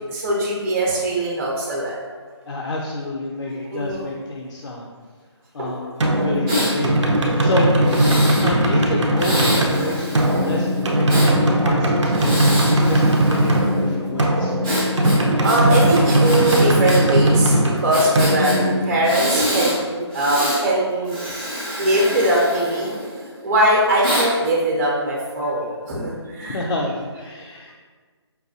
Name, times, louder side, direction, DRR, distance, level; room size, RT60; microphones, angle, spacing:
voice 1, 0.1-2.0 3.6-4.1 5.6-5.7 7.5-7.8 8.2-8.3 9.8-10.0 15.4-18.6 18.8-21.2 21.8-26.6, right 1 dB, 30° right, -4 dB, 0.7 m, -21 dB
voice 2, 2.4-4.9 5.5-7.7 8.4-10.7 10.9-12.6 12.9-14.6 26.5-27.7, left 2 dB, 80° left, -2 dB, 0.5 m, -28 dB
sound 1, 6.0-19.5, right 1 dB, 85° right, 0.7 m, -19 dB
Breathing, 6.5-6.7 7.8-8.5 9.2-11.3 12.1-13.7 14.6-17.0 17.3-17.4 17.9-18.6 19.0-19.8 20.1-20.6 21.0-23.2 24.0-24.3, equal, 10° right, 0.4 m, -26 dB
5.3 x 2.3 x 2.7 m, 1.5 s
hypercardioid pair, 165°, 15 cm